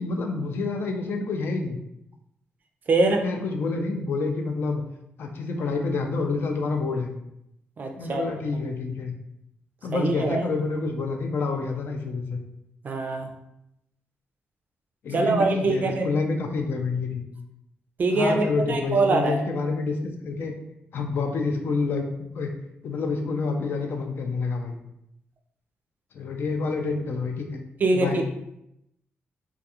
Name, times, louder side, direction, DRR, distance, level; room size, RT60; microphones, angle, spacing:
voice 1, 0.0-1.8 3.0-4.8 5.2-7.1 8.0-9.1 9.8-12.4 15.0-17.2 18.1-20.5 20.9-22.5 22.8-24.8 26.1-27.6 27.9-28.2, left 4 dB, 65° left, 3 dB, 0.4 m, -28 dB
voice 2, 2.9-3.2 7.8-8.2 9.9-10.5 12.8-13.3 15.1-16.1 18.0-19.4 27.8-28.3, right 3 dB, 45° right, 4 dB, 0.4 m, -23 dB
2.3 x 2.3 x 2.8 m, 0.81 s
cardioid pair, 115°, 4 cm